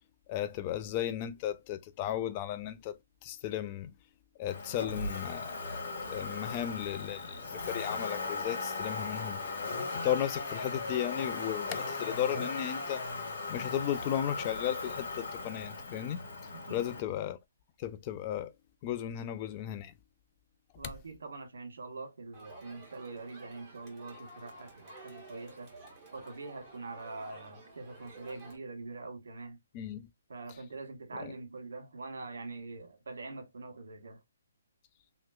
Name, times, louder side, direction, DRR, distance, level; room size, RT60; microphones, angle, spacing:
voice 1, 0.3-3.0 3.2-3.9 4.4-9.4 10.0-13.0 13.5-16.2 16.7-17.4 17.8-18.5 18.8-19.9 29.7-30.0 31.1-31.3, left 11 dB, 30° left, 0.4 m, -35 dB
Motor vehicle (road), 4.5-17.0, left 3 dB, 60° left, 1.7 m, -38 dB
voice 2, 20.8-25.7 26.1-29.6 30.3-34.2, right 3 dB, 75° right, 1.2 m, -44 dB
Crowd, 22.3-28.6, right 2 dB, 25° right, 1.4 m, -52 dB
3.0 x 2.9 x 2.3 m
hypercardioid pair, 150°, 0 cm